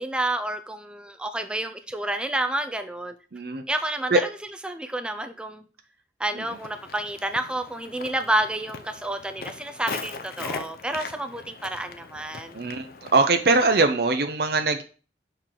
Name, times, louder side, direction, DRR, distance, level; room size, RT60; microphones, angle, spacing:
voice 1, 0.0-3.1 3.7-4.3 4.6-5.6 6.2-12.6, right 1 dB, 5° right, 7 dB, 0.4 m, -29 dB
voice 2, 3.3-3.6 4.1-4.2 6.3-6.4 12.5-12.9 13.1-14.8, right 3 dB, 60° right, 7 dB, 0.6 m, -21 dB
Walk footsteps, 6.4-13.8, left 4 dB, 55° left, 0.6 m, -40 dB
6.5 x 4.5 x 3.7 m, 0.37 s
head